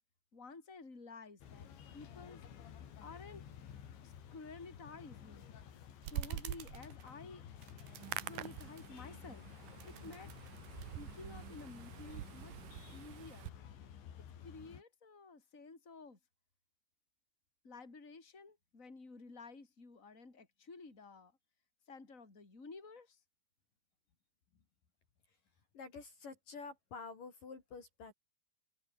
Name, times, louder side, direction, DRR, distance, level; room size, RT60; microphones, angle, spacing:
voice 1, 0.3-2.4 3.0-3.4 4.0-5.5 6.1-7.5 8.3-9.5 9.8-10.3 10.9-12.5 12.9-13.5 14.4-16.2 17.6-21.3 21.9-23.2, left 4 dB, 15° left, 4.8 m, -52 dB
sound 1, 1.4-14.8, left 9 dB, 80° left, 5.5 m, -53 dB
sound 2, 6.0-7.3 7.6-9.2 9.6-10.9 11.5-12.6, right 11 dB, 70° right, 3.9 m, -45 dB
Hands, 7.8-13.5, right 16 dB, 90° right, 1.8 m, -48 dB
voice 2, 25.7-28.1, left 4 dB, 50° left, 5.0 m, -49 dB
omnidirectional pair, 5.1 m